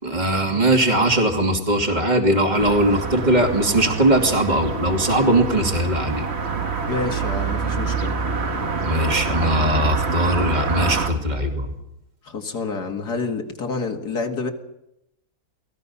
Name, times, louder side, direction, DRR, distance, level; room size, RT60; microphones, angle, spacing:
voice 1, 0.0-6.3 8.8-11.7, right 1 dB, 25° right, 2 dB, 2.8 m, -20 dB
sound 1, 2.6-11.1, right 4 dB, 45° right, 1.5 m, -26 dB
voice 2, 6.9-8.2 12.2-14.5, left 4 dB, 80° left, 4 dB, 2.5 m, -28 dB
29.5 x 19.5 x 5.6 m, 0.86 s
omnidirectional pair, 1.7 m